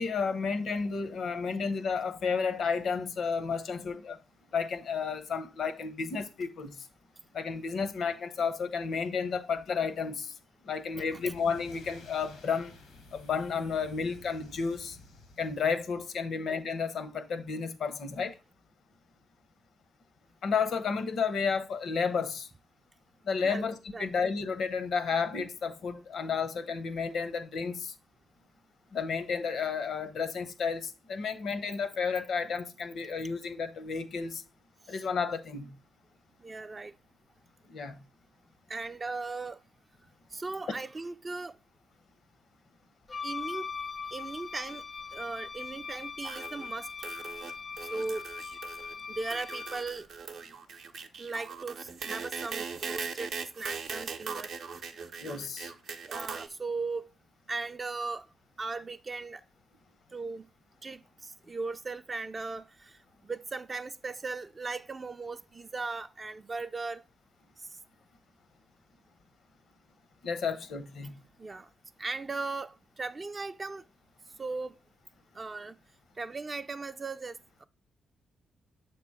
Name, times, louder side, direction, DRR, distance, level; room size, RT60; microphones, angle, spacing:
voice 1, 0.0-4.2 4.5-6.7 7.3-10.3 10.6-12.7 13.1-15.0 15.4-18.3 20.4-22.5 23.3-27.9 28.9-34.4 34.9-35.7 37.7-38.0 55.2-55.7 70.2-71.1, left 5 dB, 70° left, 0.7 m, -32 dB
sound 1, 10.9-16.2, left 3 dB, 85° left, 1.0 m, -53 dB
voice 2, 36.4-36.9 38.7-39.6 40.3-41.6 43.2-43.7 44.1-44.8 45.1-46.9 47.9-48.2 49.1-50.0 51.2-54.5 56.1-57.1 57.5-58.3 58.6-59.4 60.1-60.5 60.8-63.0 63.2-67.0 71.4-71.7 72.0-73.8 74.4-74.8 75.3-75.7 76.2-77.6, right 3 dB, 35° right, 0.3 m, -37 dB
Wind instrument woodwind instrument, 43.1-49.9, left 5 dB, 35° left, 0.4 m, -40 dB
sound 2, 46.2-46.8 47.0-47.5 47.8-48.9 49.3-56.5, right 5 dB, 70° right, 0.6 m, -40 dB
6.8 x 2.9 x 4.8 m
supercardioid pair, 50°, 0 cm